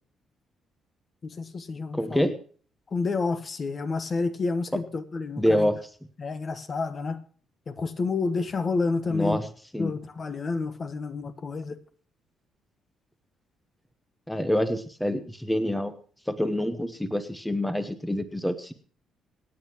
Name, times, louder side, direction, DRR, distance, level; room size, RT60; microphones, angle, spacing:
voice 1, 1.2-2.3 2.9-5.7 6.2-7.2 7.7-9.4 9.8-11.8, left 4 dB, 30° left, 1.3 m, -29 dB
voice 2, 1.9-2.3 5.4-5.8 9.1-9.4 9.7-9.9 14.3-15.9 16.3-18.7, left 1 dB, 5° left, 1.0 m, -26 dB
27.0 x 9.2 x 3.1 m
cardioid pair, 150°, 0 cm